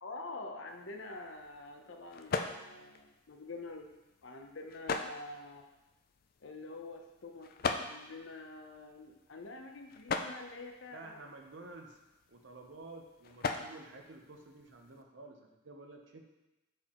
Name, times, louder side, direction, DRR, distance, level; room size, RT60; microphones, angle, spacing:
voice 1, 0.0-3.9 4.2-5.7 6.4-11.2, left 2 dB, 70° left, 4 dB, 0.8 m, -47 dB
sound 1, 0.7-15.0, left 4 dB, 45° left, 0.4 m, -42 dB
voice 2, 10.9-12.0 12.3-16.2, right 2 dB, 65° right, 3 dB, 0.8 m, -51 dB
7.7 x 4.8 x 3.0 m, 1.0 s
head